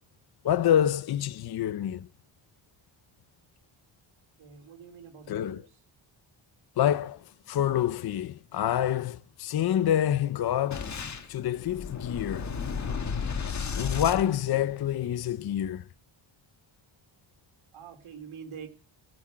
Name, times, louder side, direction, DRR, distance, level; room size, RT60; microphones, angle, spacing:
voice 1, 0.4-2.1 5.3-5.6 6.8-7.2 7.5-10.9 11.3-12.5 13.8-15.8, left 10 dB, 50° left, 0.6 m, -27 dB
voice 2, 4.4-5.7 17.7-18.7, right 7 dB, 75° right, 3.4 m, -45 dB
Boom, 10.7-15.1, left 5 dB, 35° left, 1.4 m, -34 dB
16.5 x 6.1 x 7.4 m
wide cardioid pair, 165°, 49 cm